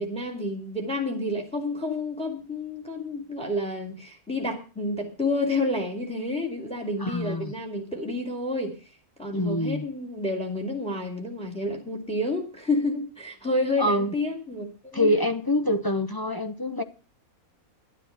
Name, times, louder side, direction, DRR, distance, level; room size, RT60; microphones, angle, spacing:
voice 1, 0.0-8.8 9.2-15.1, left 2 dB, 5° left, 3 dB, 2.4 m, -29 dB
voice 2, 7.0-7.5 9.3-9.9 13.8-14.1 14.9-16.8, left 1 dB, 25° left, 9 dB, 0.5 m, -25 dB
11.5 x 10.0 x 5.7 m, 0.35 s
omnidirectional pair, 1.5 m